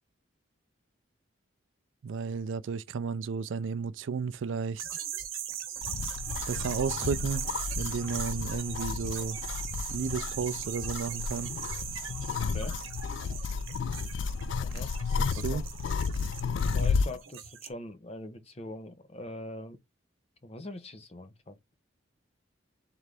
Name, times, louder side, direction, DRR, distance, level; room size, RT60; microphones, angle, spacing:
voice 1, 2.0-4.8 6.5-7.5 7.8-9.4 9.9-11.5 15.3-15.6, right 5 dB, 70° right, 0.4 m, -33 dB
sound 1, 4.8-17.7, right 10 dB, 90° right, 0.9 m, -39 dB
sound 2, 5.8-17.2, left 5 dB, 65° left, 0.3 m, -32 dB
voice 2, 14.6-15.6 16.7-19.8 20.4-21.7, left 1 dB, 30° left, 0.7 m, -42 dB
3.8 x 3.3 x 3.3 m
head